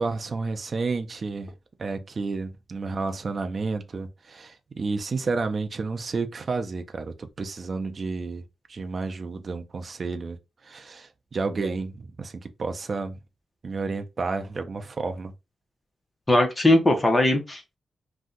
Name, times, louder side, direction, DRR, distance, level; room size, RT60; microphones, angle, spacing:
voice 1, 0.0-1.5 1.8-8.4 8.7-10.4 10.6-13.2 13.6-15.3, right 4 dB, 45° right, 0.4 m, -31 dB
voice 2, 16.3-17.8, left 1 dB, 20° left, 0.7 m, -20 dB
2.6 x 2.2 x 3.6 m
wide cardioid pair, 115°, 0 cm